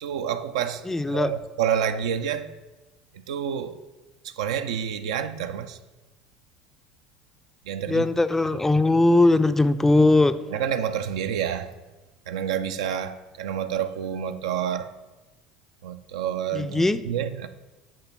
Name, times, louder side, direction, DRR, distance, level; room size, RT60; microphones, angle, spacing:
voice 1, 0.0-2.5 3.1-3.8 4.2-5.8 7.7-8.1 10.5-11.7 12.3-14.9 15.8-17.5, right 8 dB, 70° right, 0.4 m, -28 dB
voice 2, 0.9-1.3 7.9-10.4 16.5-17.0, left 2 dB, 10° left, 0.4 m, -20 dB
9.7 x 3.4 x 5.9 m
hypercardioid pair, 70°, 3 cm